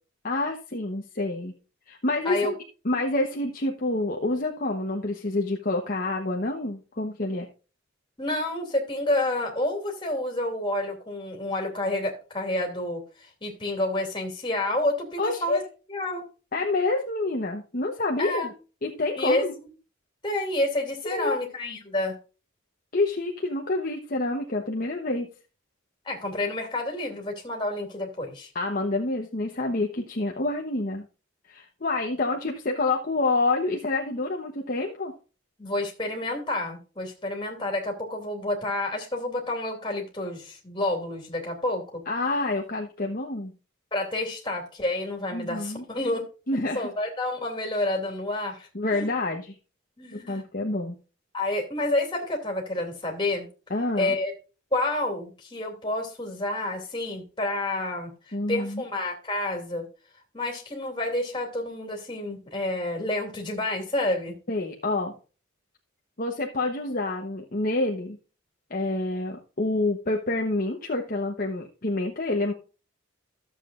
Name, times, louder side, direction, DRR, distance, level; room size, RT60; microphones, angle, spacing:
voice 1, 0.2-1.5 1.9-7.5 15.2-15.6 16.5-18.5 18.8-19.5 21.0-21.4 22.9-25.3 28.5-31.0 31.5-35.1 42.1-43.5 45.3-45.8 46.5-46.9 48.7-49.5 50.1-50.9 53.7-54.1 58.3-58.8 64.5-65.1 66.2-68.2 68.7-72.5, left 2 dB, 40° left, 1 dB, 1.0 m, -28 dB
voice 2, 8.2-15.6 15.9-16.3 18.2-18.5 19.2-19.4 20.2-22.2 26.0-28.5 35.6-42.0 43.9-46.3 46.7-49.1 50.0-50.4 51.3-53.5 54.0-54.3 54.7-59.9 60.3-64.3, left 1 dB, 25° left, 2 dB, 2.7 m, -29 dB
14.0 x 7.5 x 2.5 m, 0.34 s
head